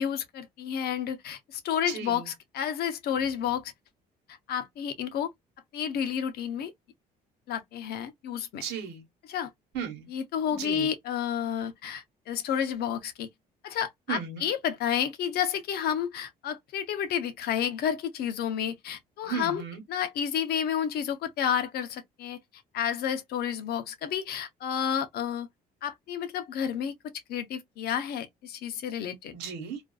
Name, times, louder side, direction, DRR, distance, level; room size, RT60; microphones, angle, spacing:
voice 1, 0.0-3.7 4.5-5.3 5.7-6.7 7.5-8.6 9.3-9.5 10.1-13.3 13.6-19.6 19.9-22.4 22.7-25.5 25.8-26.9 27.3-29.3, left 8 dB, 70° left, 0.7 m, -30 dB
voice 2, 1.9-2.3 8.6-9.0 9.7-10.1 10.5-10.9 14.1-14.4 19.2-19.8 29.3-29.8, right 7 dB, 90° right, 1.2 m, -35 dB
2.5 x 2.4 x 2.2 m
cardioid pair, 110°, 17 cm